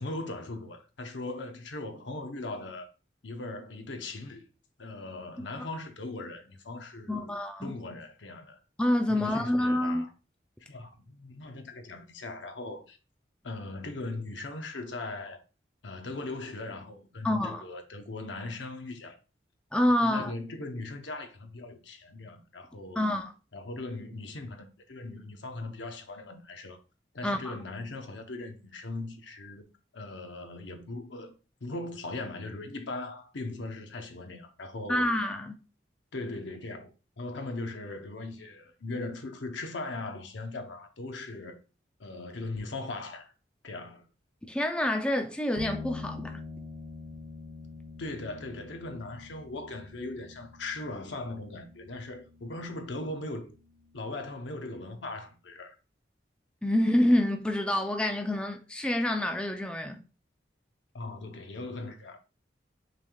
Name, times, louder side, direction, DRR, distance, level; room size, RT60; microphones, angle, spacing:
voice 1, 0.0-2.9 3.2-4.5 4.8-8.6 9.1-10.1 10.7-13.0 13.4-15.4 15.8-19.2 20.0-23.0 23.5-26.8 27.1-29.6 29.9-31.3 31.6-35.2 36.1-36.9 37.2-41.6 42.0-43.3 43.6-44.1 48.0-53.5 53.9-55.7 60.9-62.2, left 2 dB, 85° left, 0.8 m, -39 dB
voice 2, 7.1-7.8 8.8-10.0 17.2-17.6 19.7-20.3 23.0-23.3 27.2-27.6 34.9-35.6 44.4-46.4 56.6-60.0, left 1 dB, 5° left, 0.4 m, -27 dB
sound 1, 45.6-55.0, left 3 dB, 40° right, 1.4 m, -46 dB
6.0 x 3.4 x 2.3 m
head